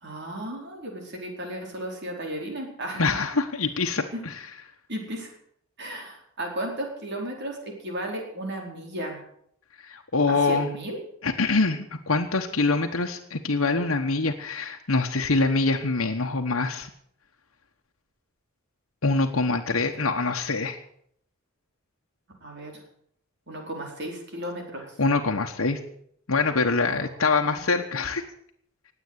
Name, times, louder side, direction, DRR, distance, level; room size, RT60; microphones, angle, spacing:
voice 1, 0.0-3.0 3.9-4.2 4.9-5.3 5.8-9.2 10.3-11.0 19.9-20.0 22.4-22.8 23.5-24.9 26.9-27.6, right 1 dB, 55° right, 1 dB, 4.6 m, -35 dB
voice 2, 3.0-4.3 9.8-10.7 11.2-16.9 19.0-20.8 25.0-25.8 26.3-28.2, left 3 dB, 75° left, 3 dB, 1.2 m, -24 dB
19.5 x 8.2 x 8.2 m, 0.68 s
head